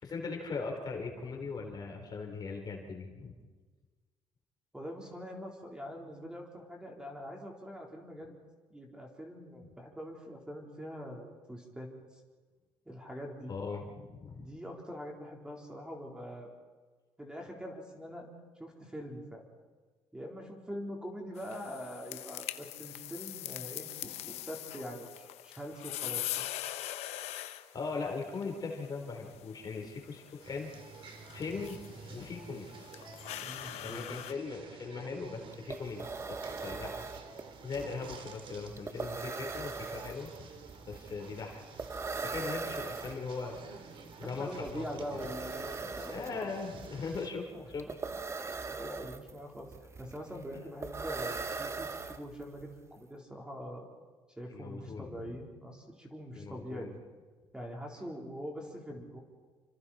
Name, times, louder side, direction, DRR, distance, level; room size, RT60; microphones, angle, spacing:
voice 1, 0.0-3.3 13.5-14.5 27.7-30.7 31.3-32.7 33.8-37.1 37.6-40.5 40.9-41.6 42.2-43.6 44.2-44.8 45.1-45.3 46.1-47.9 54.5-55.3 56.3-57.0, left 4 dB, 40° left, 2 dB, 4.0 m, -39 dB
voice 2, 4.7-8.3 8.7-11.9 12.9-13.5 14.4-16.5 17.2-18.3 18.6-19.4 20.1-26.5 33.4-34.2 44.2-46.4 47.5-47.7 48.1-48.2 48.7-49.7 50.0-53.9 54.4-56.9 57.5-59.2, equal, 10° right, 0 dB, 3.9 m, -43 dB
sound 1, 21.4-34.3, left 13 dB, 85° left, 1.0 m, -43 dB
sound 2, 30.4-47.3, right 5 dB, 55° right, 2.8 m, -50 dB
sound 3, 35.2-35.3 35.5-52.6, right 4 dB, 25° right, 1.1 m, -41 dB
29.0 x 25.0 x 4.4 m, 1.4 s
cardioid pair, 110°, 11 cm